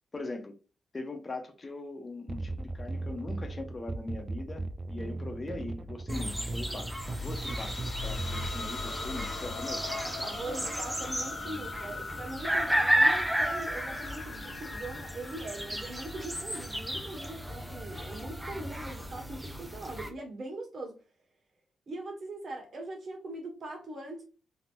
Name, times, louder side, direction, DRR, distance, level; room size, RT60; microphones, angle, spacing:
voice 1, 0.1-0.6 0.9-9.9, left 2 dB, 35° left, 0.7 m, -40 dB
sound 1, 2.3-8.7, right 2 dB, 35° right, 0.4 m, -37 dB
sound 2, 6.1-20.1, equal, 5° right, 0.7 m, -33 dB
sound 3, 6.7-17.3, left 3 dB, 55° left, 1.5 m, -41 dB
voice 2, 9.9-21.0 21.9-24.2, right 2 dB, 55° right, 1.4 m, -41 dB
3.5 x 2.7 x 2.5 m
cardioid pair, 75°, 0 cm